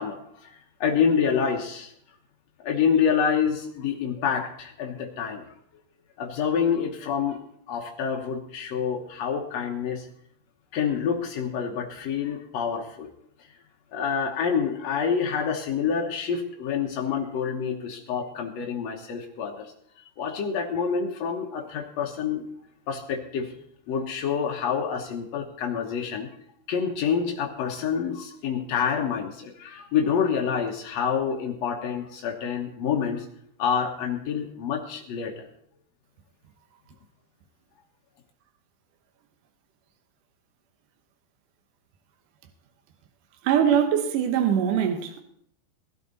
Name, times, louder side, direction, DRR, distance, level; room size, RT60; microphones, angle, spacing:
voice 1, 0.0-1.9 2.6-5.4 6.2-7.4 7.7-10.0 10.7-13.1 13.9-19.7 20.2-22.5 22.9-23.5 23.9-26.3 26.7-33.2 33.6-35.5, left 7 dB, 85° left, 1.4 m, -27 dB
voice 2, 43.4-45.2, right 8 dB, 70° right, 2.1 m, -22 dB
18.5 x 12.5 x 4.0 m
omnidirectional pair, 4.8 m